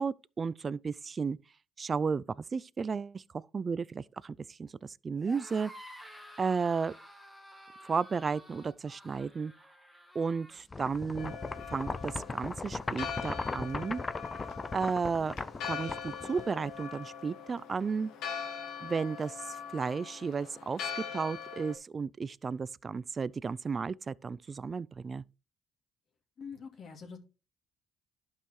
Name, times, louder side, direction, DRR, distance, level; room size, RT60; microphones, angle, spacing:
voice 1, 0.0-1.4 1.8-2.2 2.5-5.7 6.4-6.9 7.8-9.5 10.1-11.3 11.7-14.0 14.7-15.4 15.7-18.1 18.8-25.2, right 5 dB, 30° right, 0.3 m, -33 dB
sound 1, 5.2-10.6, equal, ahead, 1.8 m, -51 dB
sound 2, 10.7-16.8, left 3 dB, 20° left, 0.5 m, -38 dB
Church bell, 11.2-21.7, left 7 dB, 75° left, 1.7 m, -42 dB
voice 2, 26.4-27.2, left 5 dB, 50° left, 2.4 m, -44 dB
11.5 x 5.5 x 3.2 m
cardioid pair, 105°, 0 cm